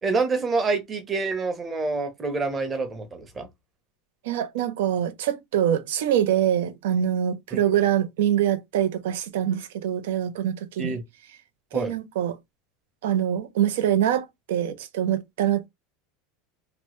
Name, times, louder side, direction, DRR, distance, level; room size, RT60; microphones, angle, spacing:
voice 1, 0.0-3.5 7.5-7.6 10.8-11.0 11.7-11.9, right 3 dB, 20° right, 0.8 m, -27 dB
voice 2, 4.2-11.0 11.7-12.4 13.0-15.7, right 10 dB, 85° right, 0.5 m, -24 dB
2.9 x 2.2 x 3.0 m
supercardioid pair, 140°, 0 cm